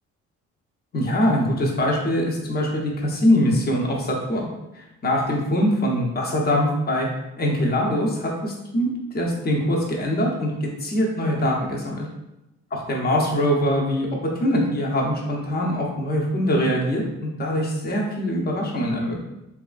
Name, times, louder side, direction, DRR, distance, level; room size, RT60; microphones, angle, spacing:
voice 1, 0.9-4.5 4.7-7.1 7.4-12.1 12.9-14.1 14.4-19.3, equal, 30° left, -1 dB, 0.7 m, -23 dB
2.9 x 2.4 x 2.4 m, 0.92 s
cardioid pair, 90°, 30 cm